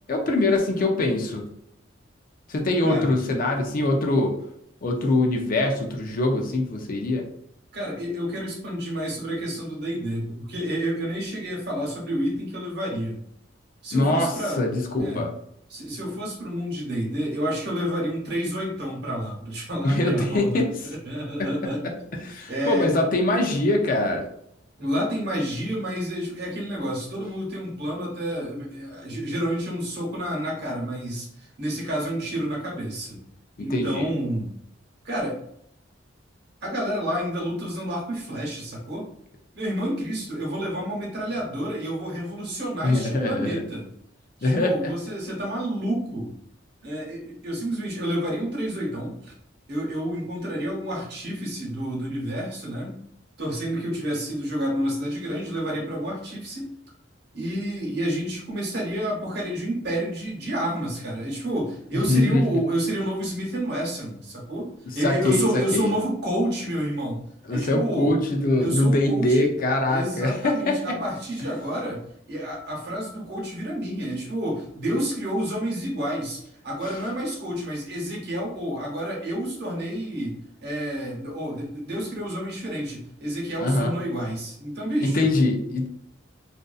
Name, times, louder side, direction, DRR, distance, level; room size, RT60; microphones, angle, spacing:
voice 1, 0.1-1.4 2.5-4.3 4.8-7.3 13.9-15.3 19.8-20.8 21.4-21.5 22.2-24.3 33.6-34.1 42.8-43.6 44.4-44.9 62.1-62.5 64.9-65.9 67.5-71.0 83.6-83.9 85.0-85.9, left 2 dB, 50° left, 2 dB, 0.5 m, -23 dB
voice 2, 2.8-3.1 7.7-13.2 13.8-14.6 15.0-15.3 15.7-21.8 22.5-22.9 24.8-33.2 33.6-34.5 35.0-35.4 36.6-39.0 39.5-43.9 44.4-46.3 46.8-49.3 49.7-53.0 53.4-56.7 57.3-67.2 67.5-68.1 68.6-69.5 69.9-72.0 72.3-80.4 80.6-85.3, equal, 60° right, -2 dB, 0.9 m, -29 dB
2.5 x 2.4 x 2.3 m, 0.73 s
head